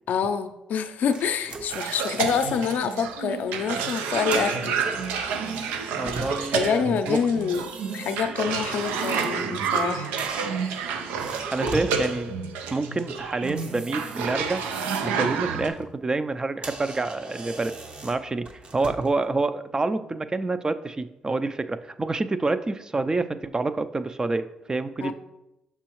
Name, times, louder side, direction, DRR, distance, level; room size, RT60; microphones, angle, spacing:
voice 1, 0.1-5.1 6.0-7.6 7.9-10.1 25.0-25.1, left 6 dB, 70° left, 8 dB, 0.5 m, -27 dB
sound 1, 1.1-2.7 3.1-3.3 4.1-6.6 7.3-9.9 10.2-12.0 13.4-15.2 15.6-15.9 16.3-16.4 16.6-19.2, right 2 dB, 40° right, 0.8 m, -40 dB
Cough, 1.7-15.7, right 6 dB, 90° right, 0.5 m, -29 dB
voice 2, 6.0-7.2 11.5-12.3 12.7-14.6 15.0-17.7 18.0-25.1, right 3 dB, 25° right, 11 dB, 0.4 m, -27 dB
6.1 x 5.6 x 3.0 m, 0.90 s
supercardioid pair, 65°, 3 cm